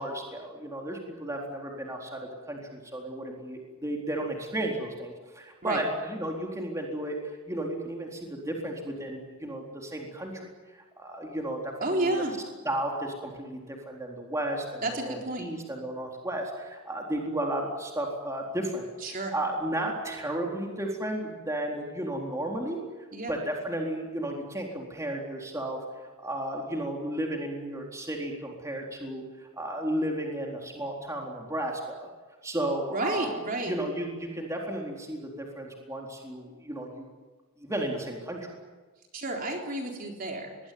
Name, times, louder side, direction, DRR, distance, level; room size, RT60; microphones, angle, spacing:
voice 1, 0.0-7.2 7.5-12.2 12.6-13.6 13.9-22.8 23.3-32.1 32.4-33.4 33.7-37.1 37.6-38.5, right 1 dB, 15° right, 0 dB, 4.1 m, -33 dB
voice 2, 11.8-12.3 14.8-15.5 19.0-19.3 23.1-23.3 32.9-33.7 39.1-40.6, right 2 dB, 40° right, 1 dB, 4.0 m, -31 dB
26.5 x 21.0 x 9.5 m, 1.3 s
head